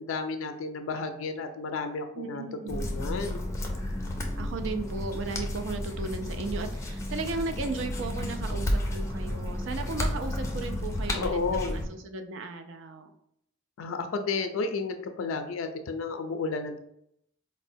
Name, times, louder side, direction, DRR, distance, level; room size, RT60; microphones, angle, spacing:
voice 1, 0.0-3.4 11.2-11.8 13.8-16.8, left 4 dB, 85° left, 7 dB, 0.4 m, -32 dB
voice 2, 2.1-2.9 4.4-13.1, right 3 dB, 65° right, 7 dB, 0.4 m, -35 dB
sound 1, 2.7-11.9, left 1 dB, 15° left, 0.4 m, -32 dB
4.2 x 2.1 x 2.6 m, 0.74 s
head